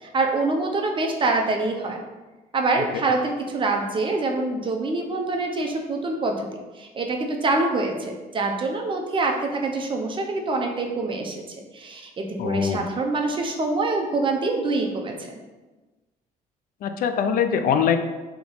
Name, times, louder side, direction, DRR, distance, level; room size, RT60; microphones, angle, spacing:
voice 1, 0.1-2.0 2.5-6.5 6.8-11.4 11.7-15.3, right 3 dB, 30° right, 2 dB, 0.6 m, -25 dB
voice 2, 12.4-12.8 16.8-18.0, left 7 dB, 60° left, 8 dB, 0.4 m, -22 dB
3.6 x 2.9 x 3.8 m, 1.2 s
cardioid pair, 110°, 17 cm